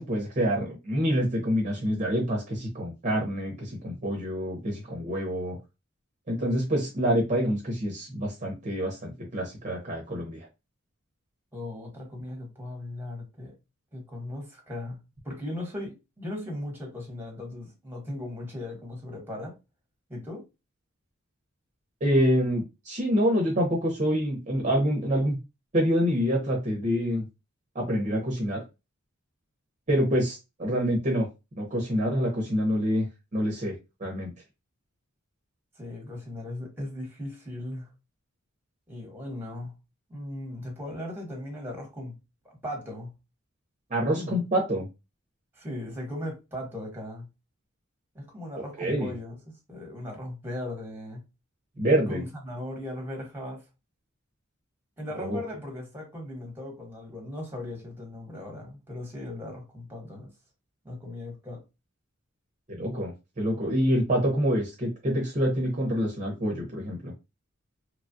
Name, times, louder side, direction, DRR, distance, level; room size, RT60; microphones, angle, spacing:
voice 1, 0.0-5.6 6.3-10.5 22.0-25.4 25.7-27.2 27.7-28.6 29.9-31.3 31.6-33.1 33.3-33.7 34.0-34.3 43.9-44.9 48.8-49.1 51.8-52.2 55.2-55.4 62.7-63.1 63.4-67.1, equal, 35° right, 0.7 m, -26 dB
voice 2, 11.5-13.6 13.9-15.0 15.2-19.5 20.1-20.4 35.8-37.9 38.9-39.7 40.1-42.2 42.4-43.1 44.1-44.4 45.5-47.3 48.1-49.3 49.7-51.2 52.1-53.6 55.0-60.3 60.8-61.6, left 1 dB, 10° right, 1.1 m, -38 dB
3.0 x 2.3 x 2.6 m
head